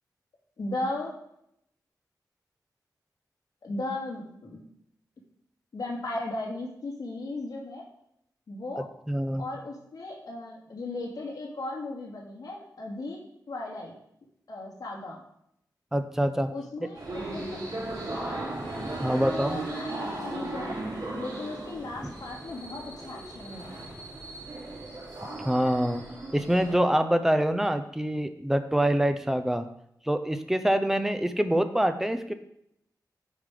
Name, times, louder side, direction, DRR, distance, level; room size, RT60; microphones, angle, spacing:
voice 1, 0.6-1.1 3.6-4.6 5.7-7.8 8.5-8.9 9.4-13.2 13.5-13.9 14.5-15.2 16.5-17.6 19.0-20.8 21.2-23.8, left 2 dB, 60° left, -3 dB, 2.6 m, -36 dB
voice 2, 8.8-9.5 15.9-16.5 19.0-19.6 22.0-22.1 25.4-26.0 26.3-29.6 30.0-32.3, right 1 dB, 5° right, 9 dB, 0.6 m, -25 dB
sound 1, 16.9-26.8, right 2 dB, 60° right, 3.9 m, -36 dB
9.8 x 5.2 x 5.0 m, 0.76 s
wide cardioid pair, 140°, 7 cm